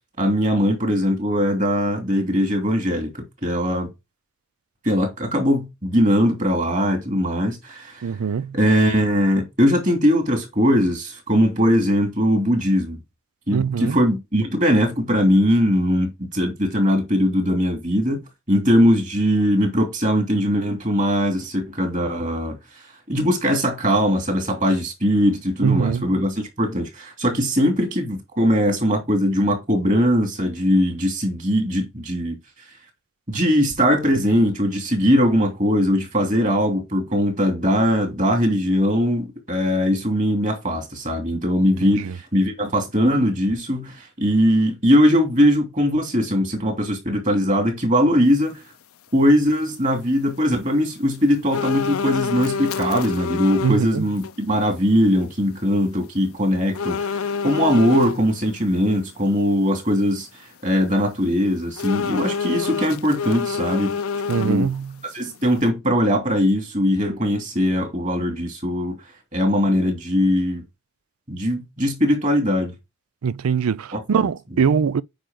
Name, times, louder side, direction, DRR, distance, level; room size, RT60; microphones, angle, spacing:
voice 1, 0.2-3.1 3.4-3.9 4.8-8.1 8.5-13.0 13.5-22.6 23.1-32.4 33.3-48.6 49.1-64.0 64.3-64.7 65.1-69.0 69.3-70.6 71.3-72.7 73.9-74.3, equal, 35° right, 2.9 m, -20 dB
voice 2, 8.0-8.6 13.5-14.0 25.6-26.0 41.8-42.1 53.6-54.0 64.3-64.9 73.2-75.0, right 6 dB, 85° right, 0.4 m, -22 dB
sound 1, 51.5-53.8 54.2-54.3 56.7-58.2 61.8-64.8 65.2-65.3, left 5 dB, 85° left, 0.6 m, -26 dB
9.0 x 5.1 x 3.8 m
head